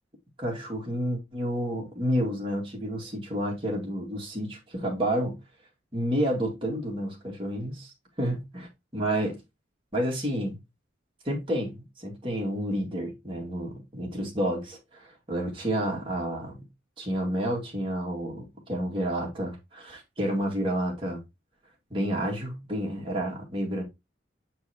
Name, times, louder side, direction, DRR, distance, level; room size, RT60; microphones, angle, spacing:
voice 1, 0.4-5.4 5.9-9.4 9.9-10.6 11.2-16.7 17.0-21.2 21.9-23.8, equal, 25° right, 2.2 m, -30 dB
7.7 x 4.5 x 2.9 m
head